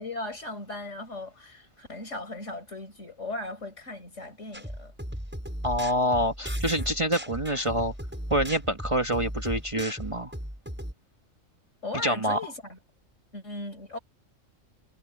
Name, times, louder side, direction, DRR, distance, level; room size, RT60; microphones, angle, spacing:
voice 1, 0.0-4.9 11.8-12.8 13.3-14.0, left 2 dB, 65° left, 5.6 m, -37 dB
sound 1, 4.5-10.9, equal, 10° right, 6.8 m, -36 dB
voice 2, 5.6-7.9 8.3-10.3 12.0-12.4, equal, 25° right, 1.4 m, -26 dB
omnidirectional pair, 1.4 m